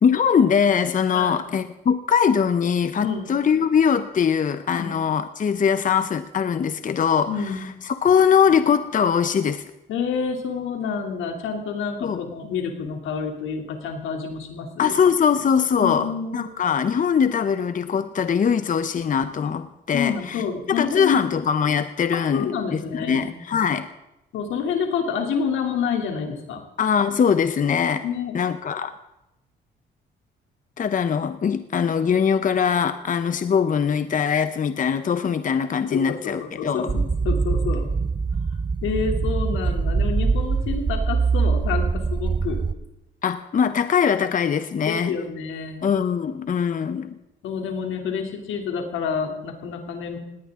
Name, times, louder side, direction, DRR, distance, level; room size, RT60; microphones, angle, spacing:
voice 1, 0.0-9.6 12.0-12.2 14.8-23.9 26.8-28.0 28.3-28.9 30.8-36.9 43.2-45.1 45.8-47.1, left 7 dB, 40° left, 11 dB, 0.8 m, -22 dB
voice 2, 1.1-1.6 3.0-3.3 4.8-4.9 7.3-7.6 9.9-14.9 15.8-16.5 19.9-21.2 22.1-23.3 24.3-26.6 28.0-28.3 35.9-37.9 38.8-42.6 44.8-45.8 47.4-50.2, left 6 dB, 85° left, 3 dB, 3.1 m, -28 dB
sound 1, 36.9-42.7, right 4 dB, 25° right, 0.6 m, -23 dB
19.0 x 18.5 x 3.8 m, 0.90 s
cardioid pair, 90°, 20 cm